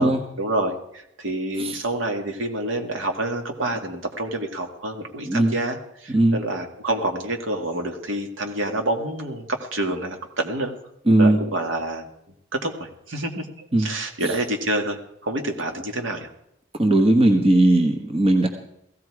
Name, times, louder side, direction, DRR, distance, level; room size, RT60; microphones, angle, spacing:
voice 1, 0.0-10.7 11.2-12.1 12.5-16.3, right 1 dB, 65° right, 4 dB, 2.1 m, -28 dB
voice 2, 11.1-11.4 13.7-13.9 14.2-14.3 16.8-18.5, right 1 dB, 30° right, 4 dB, 1.3 m, -18 dB
16.5 x 16.0 x 4.8 m, 0.80 s
head